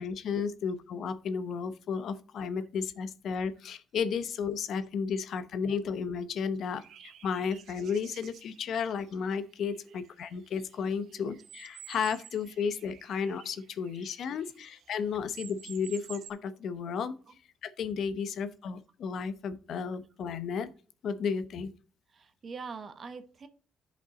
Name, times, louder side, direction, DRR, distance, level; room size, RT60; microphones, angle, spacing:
voice 1, 0.0-17.1 17.6-20.7 21.0-21.7, left 6 dB, 70° left, 0.8 m, -33 dB
sound 1, 6.8-15.0 15.3-16.3, right 9 dB, 75° right, 0.9 m, -52 dB
voice 2, 22.1-23.5, right 5 dB, 45° right, 1.1 m, -45 dB
10.5 x 5.3 x 3.8 m
cardioid pair, 90°, 0 cm